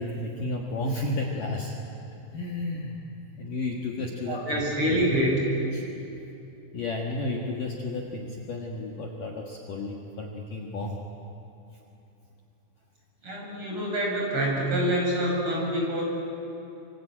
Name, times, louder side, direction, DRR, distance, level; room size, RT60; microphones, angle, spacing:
voice 1, 0.0-1.7 2.3-3.0 3.4-5.0 5.7-5.8 6.7-11.0, left 2 dB, 55° left, -1 dB, 2.7 m, -32 dB
voice 2, 4.3-5.4 13.2-16.0, right 1 dB, 25° right, -2 dB, 7.0 m, -26 dB
26.0 x 25.5 x 8.8 m, 2.9 s
omnidirectional pair, 5.6 m